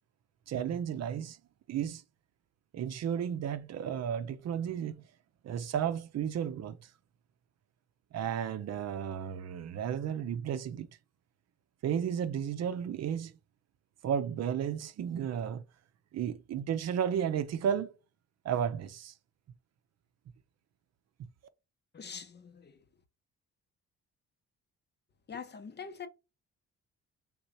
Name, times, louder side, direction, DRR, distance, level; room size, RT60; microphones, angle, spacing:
voice 1, 0.5-1.4 1.7-2.0 2.7-5.1 5.4-6.9 8.1-10.9 11.8-13.3 14.0-15.6 16.1-17.9 18.4-19.1, right 8 dB, 60° right, 0.6 m, -33 dB
voice 2, 21.9-22.8 25.3-26.1, left 6 dB, 35° left, 0.8 m, -44 dB
3.6 x 2.8 x 4.6 m
cardioid pair, 90°, 30 cm